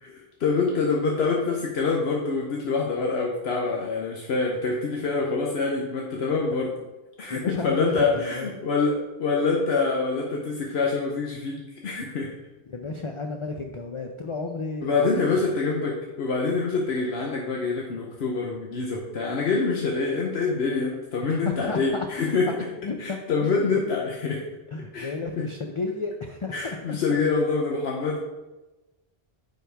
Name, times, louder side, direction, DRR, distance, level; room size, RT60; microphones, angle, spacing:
voice 1, 0.0-6.7 7.2-12.3 14.8-22.6 23.0-24.4 24.9-25.4 26.5-28.2, left 4 dB, 75° left, -1 dB, 1.1 m, -26 dB
voice 2, 7.3-8.5 12.7-15.1 21.3-22.1 22.8-23.5 23.9-24.0 24.7-27.2, left 3 dB, 40° left, 3 dB, 0.5 m, -33 dB
9.3 x 4.6 x 3.4 m, 1.1 s
omnidirectional pair, 1.1 m